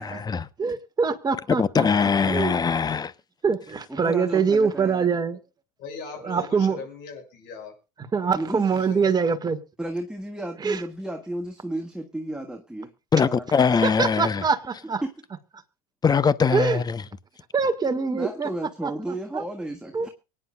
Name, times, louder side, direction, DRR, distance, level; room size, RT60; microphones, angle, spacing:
voice 1, 0.0-0.4 1.6-3.1 13.1-14.4 16.0-17.0, left 6 dB, 20° left, 0.8 m, -22 dB
voice 2, 0.6-1.9 2.3-2.6 3.4-5.4 6.2-6.8 8.1-9.6 10.6-10.8 14.0-15.0 16.5-16.8 17.5-18.5 18.8-18.9 19.3-19.4 19.9-20.1, right 5 dB, 20° right, 1.8 m, -24 dB
voice 3, 3.9-5.1 8.3-8.9 9.8-12.9 13.2-14.0 15.0-15.1 18.1-20.1, right 1 dB, 5° right, 1.6 m, -34 dB
voice 4, 5.8-7.7 8.2-9.3, left 5 dB, 55° left, 6.6 m, -40 dB
24.0 x 9.9 x 2.4 m
hypercardioid pair, 90°, 20 cm